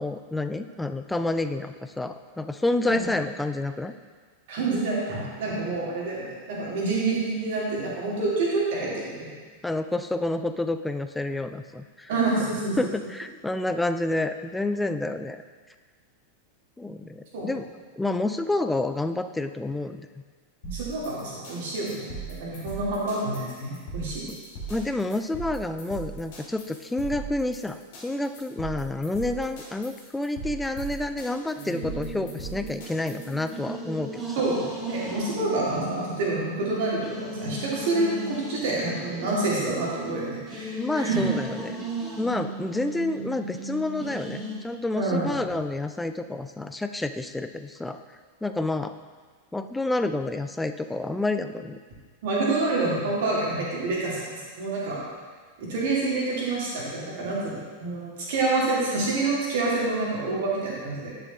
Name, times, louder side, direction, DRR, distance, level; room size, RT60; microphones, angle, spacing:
voice 1, 0.0-3.9 5.8-5.9 9.6-12.1 12.8-15.4 16.8-17.6 18.0-20.1 24.7-34.4 40.8-41.8 42.2-48.0 48.4-48.9 49.5-51.8, left 2 dB, 5° left, 8 dB, 0.3 m, -29 dB
voice 2, 4.5-9.3 12.1-12.8 17.3-17.5 20.6-24.3 34.4-41.3 45.0-45.3 52.2-55.0 55.6-61.1, right 3 dB, 55° right, -5 dB, 2.0 m, -27 dB
sound 1, 20.6-33.5, right 4 dB, 50° left, 2.2 m, -39 dB
sound 2, 31.6-44.6, right 2 dB, 15° right, 1.5 m, -36 dB
10.0 x 6.7 x 2.3 m, 1.5 s
figure-of-eight pair, 90°, 0 cm